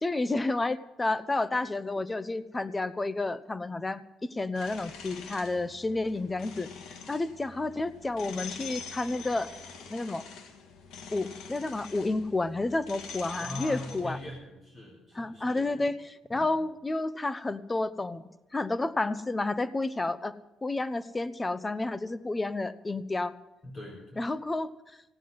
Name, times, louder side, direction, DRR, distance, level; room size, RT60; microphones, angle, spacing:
voice 1, 0.0-6.7 7.1-9.5 9.9-10.2 11.1-14.2 15.1-18.2 18.5-20.4 20.6-23.3 24.2-24.7, left 2 dB, 15° left, 15 dB, 0.7 m, -30 dB
sound 1, 4.5-14.4, left 6 dB, 75° left, 2.1 m, -45 dB
voice 2, 13.4-15.8 16.3-16.5 23.6-24.3, left 1 dB, 30° left, -3 dB, 4.2 m, -41 dB
16.0 x 9.1 x 9.4 m, 0.97 s
cardioid pair, 145°, 0 cm